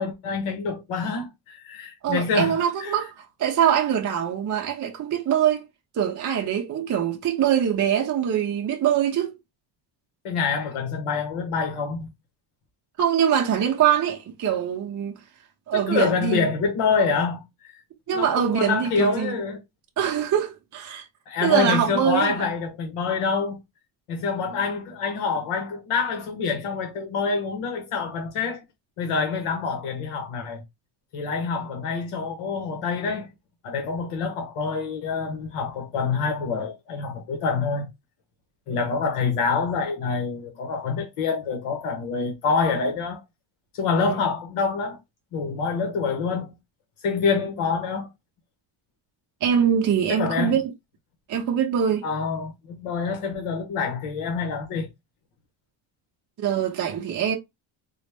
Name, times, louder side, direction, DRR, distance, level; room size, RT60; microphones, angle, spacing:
voice 1, 0.0-3.0 10.2-12.1 15.7-17.8 18.1-19.6 21.3-23.6 24.1-28.6 29.0-30.6 31.1-33.3 33.6-37.9 38.7-43.2 43.7-45.0 45.3-46.5 47.0-48.1 50.1-50.6 52.0-54.9, left 5 dB, 90° left, 1.0 m, -26 dB
voice 2, 2.0-5.7 5.9-9.3 13.0-15.2 15.7-16.5 18.1-19.4 20.0-21.1 21.4-22.5 44.0-44.2 49.4-50.7 51.3-52.0 56.4-57.4, right 9 dB, 40° right, 0.6 m, -23 dB
4.0 x 2.0 x 3.3 m
cardioid pair, 135°, 50 cm